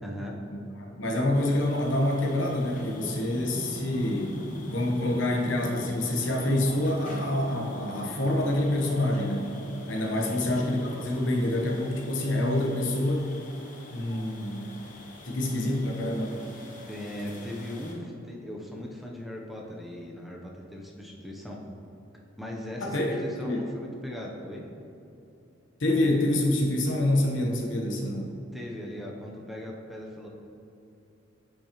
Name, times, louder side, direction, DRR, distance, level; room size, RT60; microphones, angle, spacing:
voice 1, 0.0-0.4 10.2-10.4 16.9-21.6 22.4-24.7 28.5-30.3, left 1 dB, ahead, -2 dB, 0.6 m, -38 dB
voice 2, 0.9-9.5 9.9-13.3 13.9-14.7 15.2-16.4 22.8-23.6 25.8-28.3, left 1 dB, 75° left, 1 dB, 1.0 m, -27 dB
sound 1, 1.3-17.9, left 2 dB, 45° left, 1.0 m, -47 dB
sound 2, 1.3-13.4, equal, 30° right, 0.8 m, -44 dB
8.5 x 5.4 x 2.9 m, 2.8 s
head